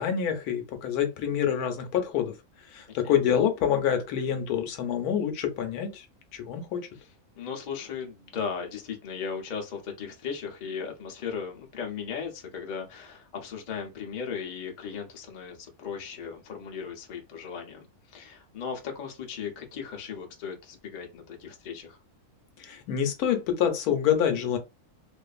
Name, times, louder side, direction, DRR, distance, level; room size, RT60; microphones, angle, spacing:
voice 1, 0.0-2.3 2.7-6.1 6.3-6.9 22.6-24.6, left 9 dB, 80° left, 1.1 m, -27 dB
voice 2, 7.4-22.0, left 6 dB, 65° left, 0.4 m, -37 dB
2.5 x 2.4 x 2.3 m
omnidirectional pair, 1.6 m